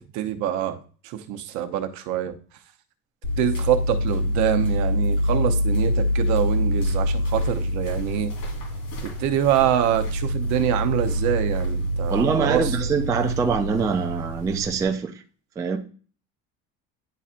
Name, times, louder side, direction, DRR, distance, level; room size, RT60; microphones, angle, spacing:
voice 1, 0.1-2.3 3.4-8.3 9.0-12.7, right 11 dB, 65° right, 0.9 m, -25 dB
sound 1, 3.2-14.8, equal, 65° left, 2.8 m, -25 dB
voice 2, 12.1-15.1 15.6-15.8, right 5 dB, 10° right, 0.3 m, -24 dB
10.0 x 4.1 x 2.5 m
cardioid pair, 170°, 30 cm